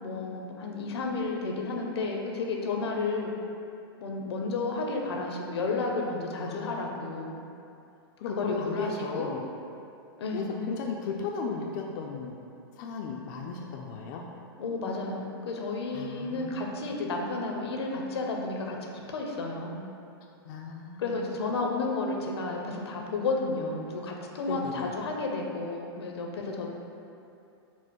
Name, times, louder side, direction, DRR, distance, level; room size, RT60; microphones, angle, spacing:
voice 1, 0.0-3.3 4.0-7.4 8.3-9.3 10.2-10.6 14.6-18.8 19.1-19.8 21.0-26.7, left 3 dB, 85° left, 1 dB, 0.6 m, -32 dB
voice 2, 6.3-6.7 8.2-9.4 10.3-12.4 12.8-14.3 15.9-16.9 20.4-21.4 24.5-24.9, left 5 dB, 50° left, 0 dB, 0.4 m, -36 dB
4.2 x 2.0 x 4.5 m, 2.6 s
hypercardioid pair, 135°, 13 cm